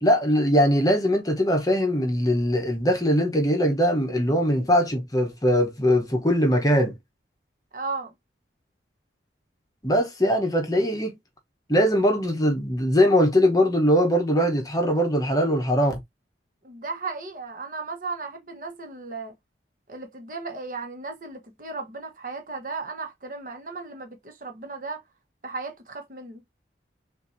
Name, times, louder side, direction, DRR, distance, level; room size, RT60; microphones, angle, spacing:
voice 1, 0.0-7.0 9.8-11.2 11.7-16.0, equal, 20° left, 1.0 m, -21 dB
voice 2, 7.7-8.1 16.6-19.3 19.9-25.0 25.4-26.4, right 4 dB, 45° right, 1.1 m, -35 dB
6.0 x 2.6 x 2.6 m
head